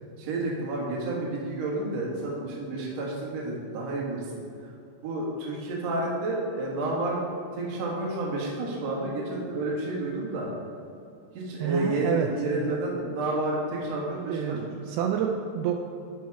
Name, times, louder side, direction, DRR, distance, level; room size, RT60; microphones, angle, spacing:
voice 1, 0.2-4.2 5.0-7.2 7.5-10.5 11.3-14.6, right 2 dB, 55° right, -3 dB, 2.1 m, -30 dB
voice 2, 11.6-12.8 14.3-15.8, right 8 dB, 85° right, 3 dB, 2.5 m, -29 dB
12.5 x 4.6 x 4.7 m, 2.6 s
omnidirectional pair, 4.8 m